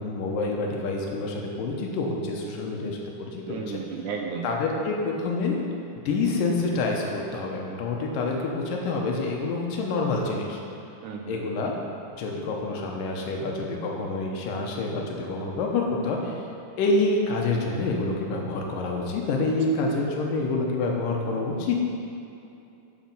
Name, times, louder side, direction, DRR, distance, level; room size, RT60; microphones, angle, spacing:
voice 1, 0.0-3.8 4.4-5.6 6.1-10.6 11.3-11.7 12.1-16.4 16.8-21.8, left 3 dB, 80° left, 0 dB, 2.6 m, -27 dB
voice 2, 3.5-4.5 11.0-11.5 19.7-19.8, right 5 dB, 80° right, 2 dB, 2.0 m, -34 dB
8.7 x 7.4 x 5.5 m, 2.8 s
omnidirectional pair, 3.9 m